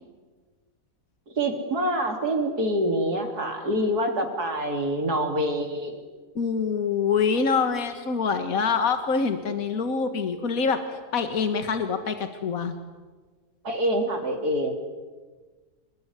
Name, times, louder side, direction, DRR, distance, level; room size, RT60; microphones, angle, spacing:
voice 1, 1.4-6.0 13.6-14.7, right 1 dB, 85° right, 4 dB, 3.9 m, -26 dB
voice 2, 6.4-10.8 11.1-12.8, left 5 dB, 65° left, 8 dB, 2.1 m, -25 dB
28.0 x 21.5 x 9.8 m, 1.4 s
omnidirectional pair, 1.6 m